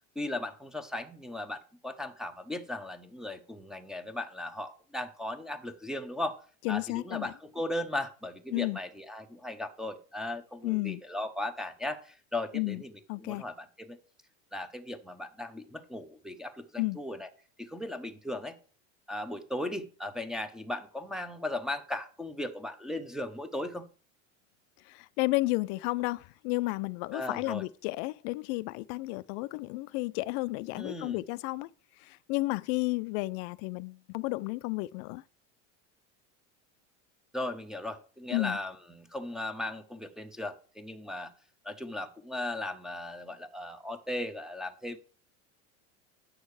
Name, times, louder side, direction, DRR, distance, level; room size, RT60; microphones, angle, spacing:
voice 1, 0.2-6.4 6.7-12.9 13.2-14.0 14.5-17.3 17.6-18.6 19.1-23.9 27.1-27.6 30.8-31.2 37.3-41.3 41.6-45.0, left 1 dB, ahead, 0.8 m, -37 dB
voice 2, 6.6-7.3 8.5-8.8 10.6-11.0 12.5-12.8 13.1-13.4 16.8-17.0 24.9-31.7 32.0-35.2 38.3-38.6, left 22 dB, 60° left, 0.5 m, -32 dB
9.4 x 6.4 x 4.8 m
supercardioid pair, 135°, 38 cm